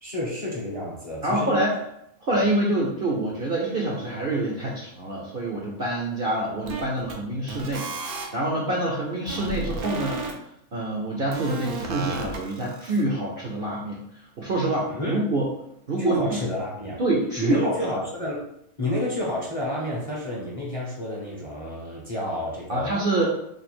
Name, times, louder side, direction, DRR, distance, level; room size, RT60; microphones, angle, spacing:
voice 1, 0.0-1.6 14.9-15.2 16.0-17.0 17.4-18.4 18.8-23.1, left 1 dB, 35° left, -4 dB, 0.6 m, -30 dB
voice 2, 1.2-1.8 2.2-10.2 10.7-15.5 15.9-16.4 17.0-17.8 22.7-23.3, right 1 dB, 55° right, -2 dB, 0.6 m, -26 dB
sound 1, 6.6-7.1 7.5-8.2 9.3-10.3 11.3-13.0, right 3 dB, 90° right, 1.1 m, -33 dB
3.2 x 2.4 x 4.3 m, 0.77 s
omnidirectional pair, 1.5 m